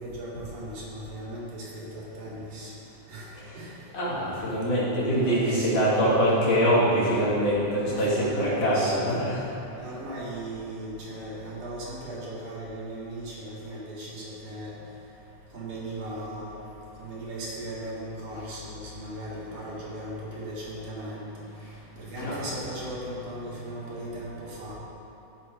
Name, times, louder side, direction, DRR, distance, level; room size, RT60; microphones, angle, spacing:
voice 1, 0.0-2.7 3.1-3.3 3.5-3.7 4.2-4.3 5.1-5.9 7.6-9.1 9.7-14.8 15.5-16.6 17.0-21.3 22.0-24.7, right 1 dB, 75° right, -7 dB, 3.4 m, -37 dB
voice 2, 3.9-9.4 22.2-22.5, equal, 80° left, -9 dB, 3.9 m, -24 dB
14.5 x 5.0 x 4.5 m, 2.9 s
omnidirectional pair, 3.5 m